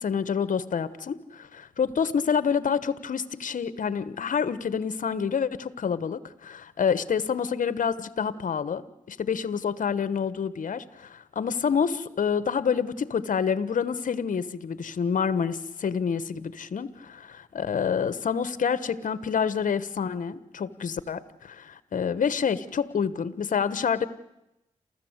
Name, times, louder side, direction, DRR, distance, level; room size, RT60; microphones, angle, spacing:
voice 1, 0.0-16.9 17.5-24.1, left 6 dB, 65° left, 15 dB, 1.2 m, -27 dB
28.5 x 14.5 x 8.1 m, 0.91 s
supercardioid pair, 45°, 14 cm